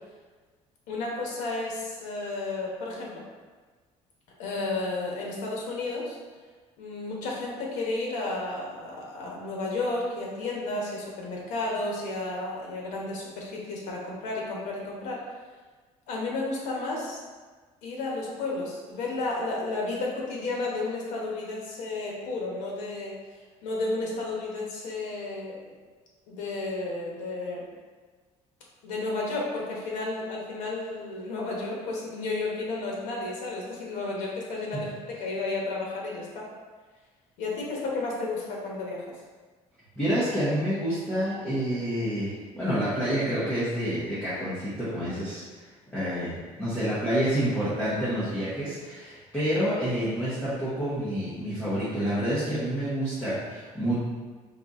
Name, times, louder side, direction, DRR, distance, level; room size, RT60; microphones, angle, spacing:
voice 1, 0.9-3.2 4.4-6.2 6.8-15.2 16.1-17.2 17.8-23.2 23.6-25.6 26.3-27.7 28.8-36.5 37.4-39.1, left 2 dB, 85° left, -2 dB, 1.1 m, -32 dB
voice 2, 40.0-45.4 45.9-54.0, equal, 10° left, -12 dB, 0.9 m, -28 dB
4.0 x 2.6 x 3.6 m, 1.4 s
cardioid pair, 180°, 12 cm